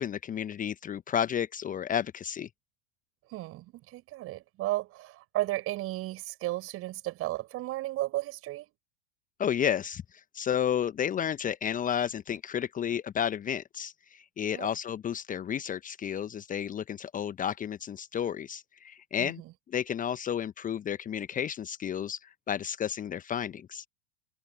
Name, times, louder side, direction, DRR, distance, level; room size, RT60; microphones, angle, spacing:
voice 1, 0.0-2.5 9.4-19.4 19.7-23.9, left 9 dB, 25° left, 1.2 m, -32 dB
voice 2, 3.3-8.7 14.5-14.7 19.2-19.5, right 17 dB, 40° right, 6.0 m, -34 dB
figure-of-eight pair, 85°, 34 cm